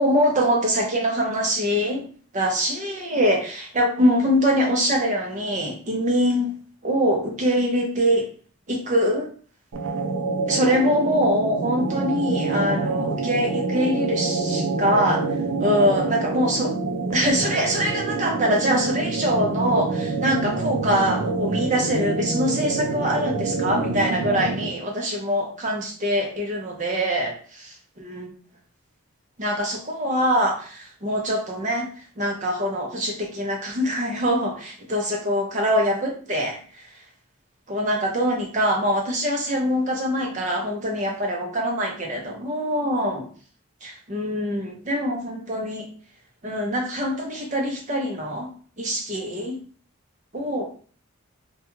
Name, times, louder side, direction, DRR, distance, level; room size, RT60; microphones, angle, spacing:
voice 1, 0.0-2.1 2.3-6.5 6.8-8.3 8.7-9.3 10.5-15.2 15.6-16.7 17.1-27.7 28.0-28.3 29.4-31.9 32.2-36.6 37.7-43.3 43.8-45.9 46.4-48.5 48.8-49.6 50.3-50.7, equal, 35° right, 0 dB, 0.6 m, -23 dB
sound 1, 9.7-24.8, right 3 dB, 85° right, 0.4 m, -26 dB
2.3 x 2.2 x 3.0 m, 0.42 s
head